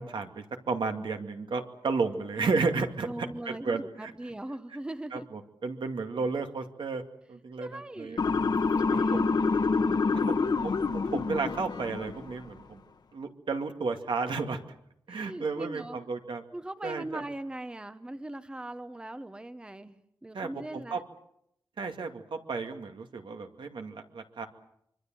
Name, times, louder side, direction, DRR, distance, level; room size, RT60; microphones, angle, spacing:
voice 1, 0.0-4.1 5.1-7.0 7.3-8.2 8.9-9.3 10.3-12.8 13.1-14.6 15.1-16.4 16.8-17.2 20.3-21.0 21.8-24.5, right 4 dB, 80° right, 5 dB, 2.3 m, -33 dB
voice 2, 3.1-5.3 7.6-8.2 8.8-9.5 15.1-16.0 16.5-21.0, right 1 dB, 10° right, 11 dB, 0.9 m, -40 dB
Motor vehicle (road) / Siren, 8.2-12.3, left 4 dB, 60° left, 1.3 m, -27 dB
25.0 x 24.0 x 7.7 m, 0.75 s
wide cardioid pair, 165°, 8 cm